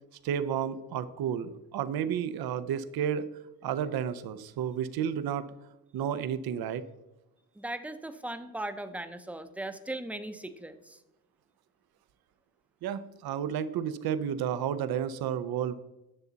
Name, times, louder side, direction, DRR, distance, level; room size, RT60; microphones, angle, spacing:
voice 1, 0.2-3.3 3.6-5.4 5.9-6.8 12.8-15.7, right 8 dB, 85° right, 13 dB, 0.7 m, -31 dB
voice 2, 7.6-11.0, right 1 dB, 5° right, 9 dB, 0.6 m, -38 dB
9.7 x 6.8 x 4.0 m, 0.97 s
cardioid pair, 110°, 36 cm